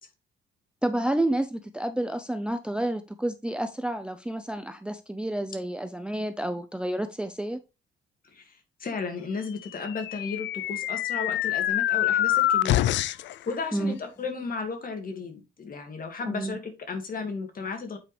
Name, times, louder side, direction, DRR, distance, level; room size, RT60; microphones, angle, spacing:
voice 1, 0.8-7.6 13.7-13.9 16.3-16.6, right 1 dB, 5° right, 0.5 m, -30 dB
voice 2, 8.3-13.1 13.5-18.0, left 4 dB, 45° left, 2.1 m, -34 dB
sound 1, 9.7-13.3, left 13 dB, 65° left, 0.4 m, -25 dB
8.4 x 4.7 x 3.3 m
cardioid pair, 90°, 20 cm